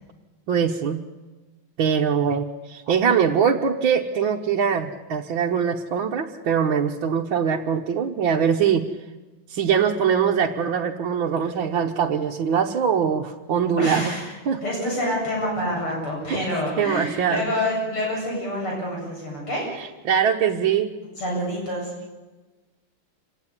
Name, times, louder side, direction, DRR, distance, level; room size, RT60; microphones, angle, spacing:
voice 1, 0.5-1.0 1.8-8.9 9.5-14.1 14.5-14.6 16.3-16.4 16.8-17.5 20.1-20.9, right 7 dB, 70° right, 0 dB, 1.9 m, -22 dB
voice 2, 13.8-14.3 14.6-19.7 21.2-21.9, left 1 dB, 85° left, -2 dB, 9.1 m, -27 dB
27.0 x 18.0 x 10.0 m, 1.2 s
omnidirectional pair, 2.3 m